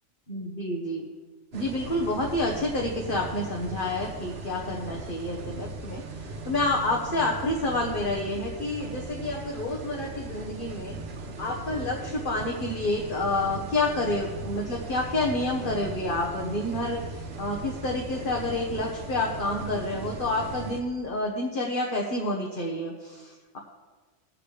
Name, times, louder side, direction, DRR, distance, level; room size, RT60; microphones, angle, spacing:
voice 1, 0.3-1.0 1.5-11.0 11.4-23.6, left 2 dB, 45° left, -1 dB, 1.3 m, -29 dB
sound 1, 1.5-20.8, right 3 dB, 65° right, 1.2 m, -38 dB
18.0 x 7.6 x 3.3 m, 1.4 s
omnidirectional pair, 1.2 m